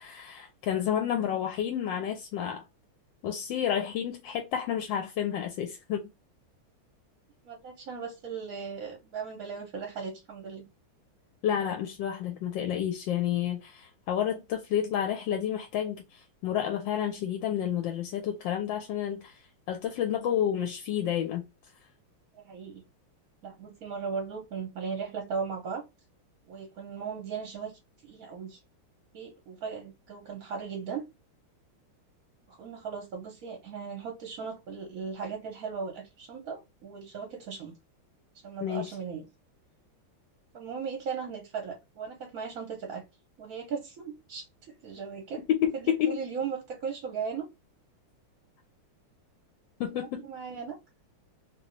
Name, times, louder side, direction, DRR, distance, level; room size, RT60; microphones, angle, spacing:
voice 1, 0.0-2.6 3.2-6.1 11.4-19.4 19.7-21.5 38.6-38.9 45.5-46.2 49.8-50.2, left 10 dB, 75° left, 1.2 m, -30 dB
voice 2, 7.4-10.7 22.3-22.8 23.4-25.8 26.5-28.6 29.1-31.0 32.5-37.7 38.4-39.2 40.5-43.0 43.4-45.4 45.7-47.5 49.9-50.8, right 6 dB, 60° right, 1.0 m, -37 dB
3.0 x 2.9 x 3.1 m
omnidirectional pair, 2.3 m